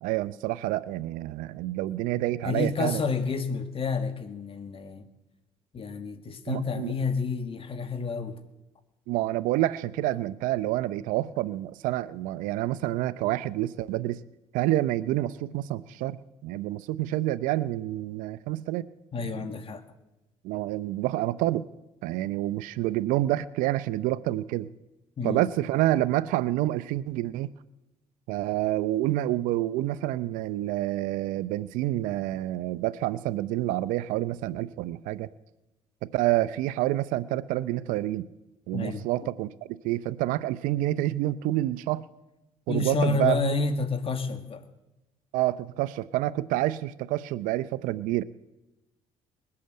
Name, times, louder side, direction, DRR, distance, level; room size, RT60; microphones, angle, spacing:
voice 1, 0.0-3.0 6.5-6.9 9.1-14.2 14.5-18.9 19.2-19.5 20.4-21.7 22.0-24.7 25.2-27.5 28.3-35.3 36.0-38.3 38.7-42.0 42.7-43.4 45.3-48.2, right 15 dB, 85° right, 17 dB, 0.6 m, -28 dB
voice 2, 2.4-5.0 5.7-8.4 19.1-19.8 25.2-25.5 38.7-39.1 42.7-44.6, left 4 dB, 45° left, 9 dB, 1.9 m, -29 dB
21.0 x 8.5 x 7.7 m, 0.98 s
supercardioid pair, 80°, 13 cm